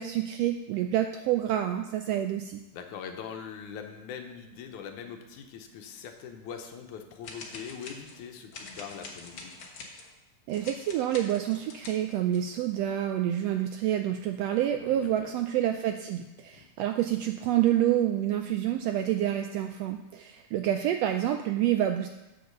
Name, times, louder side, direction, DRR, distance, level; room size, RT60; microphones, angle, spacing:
voice 1, 0.0-2.6 10.5-22.1, right 11 dB, 85° right, 6 dB, 1.4 m, -28 dB
voice 2, 2.7-9.5 14.8-15.3 16.6-16.7, left 7 dB, 80° left, 5 dB, 2.3 m, -42 dB
sound 1, 7.2-8.2 8.5-10.1 10.5-12.5, left 3 dB, 50° left, 1.6 m, -45 dB
8.0 x 6.8 x 6.7 m, 1.0 s
omnidirectional pair, 3.4 m